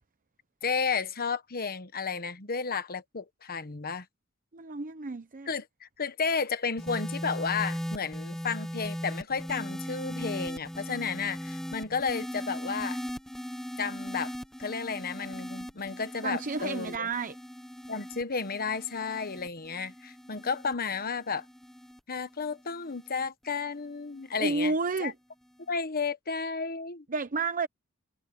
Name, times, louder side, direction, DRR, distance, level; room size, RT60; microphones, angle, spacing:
voice 1, 0.6-4.0 5.5-13.0 13.8-14.3 14.6-17.1 17.9-21.4 22.1-24.7 25.0-25.1 25.7-27.0, left 5 dB, 45° left, 1.3 m, -32 dB
voice 2, 4.5-5.5 16.2-17.3 24.4-25.1 27.1-27.7, right 3 dB, 40° right, 0.8 m, -31 dB
sound 1, 6.8-23.3 24.2-24.5, equal, ahead, 0.8 m, -39 dB
head